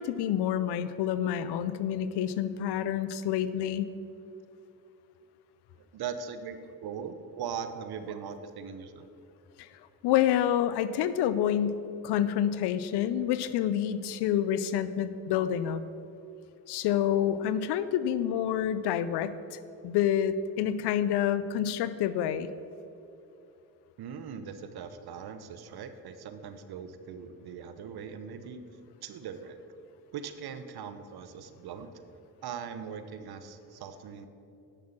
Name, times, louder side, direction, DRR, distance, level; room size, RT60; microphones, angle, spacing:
voice 1, 0.0-3.9 9.6-9.7 10.0-15.8 16.7-22.5, left 10 dB, 90° left, 14 dB, 0.6 m, -28 dB
voice 2, 5.9-9.1 24.0-28.6 29.0-29.6 30.1-31.9 32.4-34.3, right 7 dB, 70° right, 9 dB, 1.0 m, -40 dB
10.0 x 6.5 x 7.3 m, 2.8 s
supercardioid pair, 60°, 38 cm